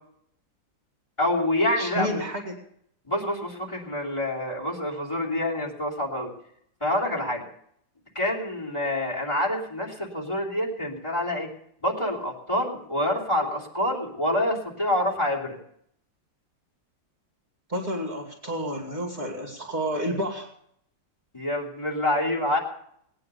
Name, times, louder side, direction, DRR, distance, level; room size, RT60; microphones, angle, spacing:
voice 1, 1.2-2.2 3.1-6.3 6.8-7.4 8.1-11.5 11.8-15.6 21.3-22.6, left 1 dB, 15° left, -1 dB, 3.1 m, -27 dB
voice 2, 1.8-2.5 17.7-20.5, equal, 25° right, -3 dB, 2.6 m, -30 dB
19.0 x 9.7 x 6.8 m, 0.69 s
omnidirectional pair, 2.1 m